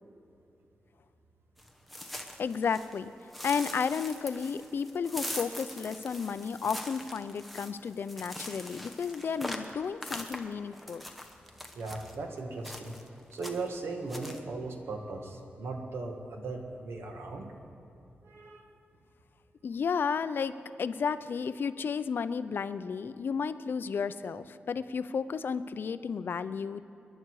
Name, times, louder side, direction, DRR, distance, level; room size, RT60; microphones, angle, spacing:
sound 1, 1.6-3.0 3.3-12.2 12.6-13.1 13.3-13.8 14.1-14.4, left 1 dB, ahead, 1.0 m, -42 dB
voice 1, 2.4-11.0 19.6-26.8, left 6 dB, 60° left, 13 dB, 0.5 m, -33 dB
voice 2, 11.7-13.0 13.3-17.5 18.2-18.7, right 3 dB, 80° right, 3 dB, 1.8 m, -38 dB
25.5 x 11.0 x 4.8 m, 2.8 s
wide cardioid pair, 160°, 4 cm